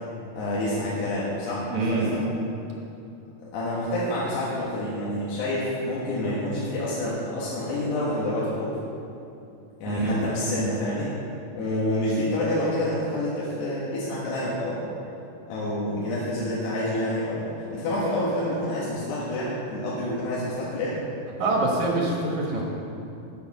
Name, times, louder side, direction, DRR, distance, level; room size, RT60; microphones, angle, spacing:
voice 1, 0.3-2.2 3.4-8.7 9.8-11.1 11.5-14.9 15.5-21.0, left 1 dB, 85° left, -7 dB, 3.7 m, -28 dB
voice 2, 1.7-2.1 9.9-10.2 21.4-22.6, right 2 dB, 60° right, -1 dB, 2.2 m, -25 dB
15.0 x 6.6 x 6.0 m, 2.7 s
omnidirectional pair, 4.6 m